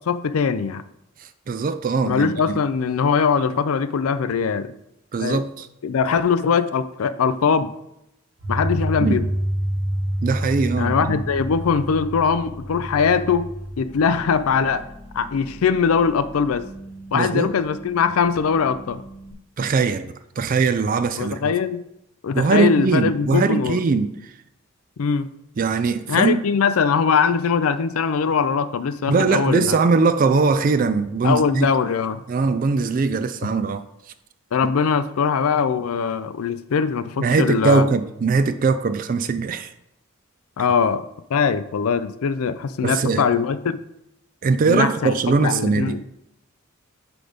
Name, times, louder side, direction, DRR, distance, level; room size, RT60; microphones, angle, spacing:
voice 1, 0.1-0.8 2.0-4.7 5.2-5.4 5.8-7.7 8.5-9.3 10.8-13.5 13.8-14.8 15.1-16.7 17.1-19.0 21.2-21.8 22.2-23.8 25.0-25.3 26.1-29.8 31.2-32.2 34.5-37.9 40.6-41.0 41.3-43.8 44.7-45.1 45.4-46.0, left 6 dB, 85° left, 0.4 m, -21 dB
voice 2, 1.2-2.6 5.1-5.7 9.0-9.2 10.2-11.2 17.1-17.5 19.6-21.5 22.3-24.3 25.6-26.4 29.1-31.7 32.3-33.8 37.2-39.7 42.8-43.3 44.4-46.0, right 4 dB, 40° right, 0.3 m, -21 dB
sound 1, 8.4-19.3, equal, 70° right, 1.2 m, -30 dB
6.1 x 5.0 x 5.0 m
head